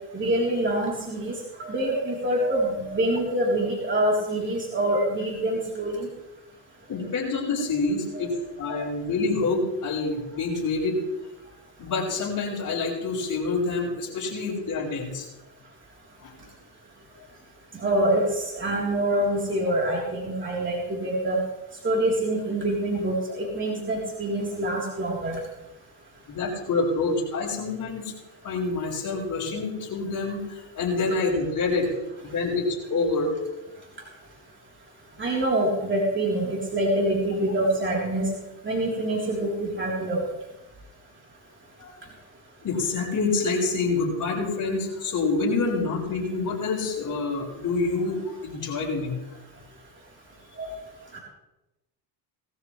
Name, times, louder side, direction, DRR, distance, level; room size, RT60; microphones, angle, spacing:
voice 1, 0.1-1.3 1.6-6.1 8.7-8.8 17.8-21.4 21.8-25.4 35.2-38.3 38.6-40.2 50.6-50.7 51.1-51.2, right 1 dB, 25° right, -3 dB, 3.8 m, -25 dB
voice 2, 6.9-11.0 11.8-15.3 16.2-16.3 26.3-28.1 28.4-31.9 32.2-33.3 41.8-41.9 42.6-49.2, left 3 dB, 45° left, -2 dB, 6.3 m, -27 dB
20.0 x 14.0 x 3.3 m, 0.98 s
supercardioid pair, 90°, 44 cm